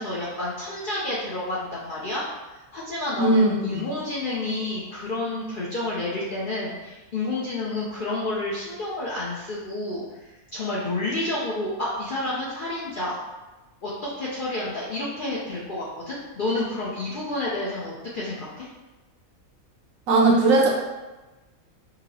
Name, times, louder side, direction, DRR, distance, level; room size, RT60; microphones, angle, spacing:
voice 1, 0.0-2.2 2.7-13.2 13.8-18.7, left 2 dB, 55° left, -7 dB, 0.5 m, -30 dB
voice 2, 3.2-3.9 20.1-20.7, right 2 dB, 75° right, -1 dB, 1.0 m, -19 dB
5.2 x 2.0 x 2.7 m, 1.1 s
omnidirectional pair, 1.5 m